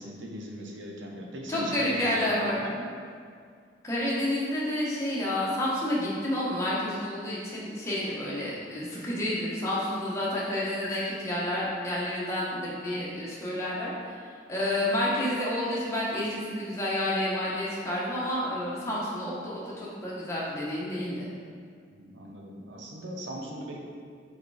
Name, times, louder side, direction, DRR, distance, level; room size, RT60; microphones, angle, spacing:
voice 1, 0.0-2.8 21.9-23.8, right 1 dB, 85° right, 0 dB, 0.9 m, -39 dB
voice 2, 1.5-2.6 3.8-14.2 14.5-21.3, left 1 dB, 15° left, -7 dB, 1.2 m, -30 dB
4.9 x 4.4 x 4.9 m, 2.2 s
head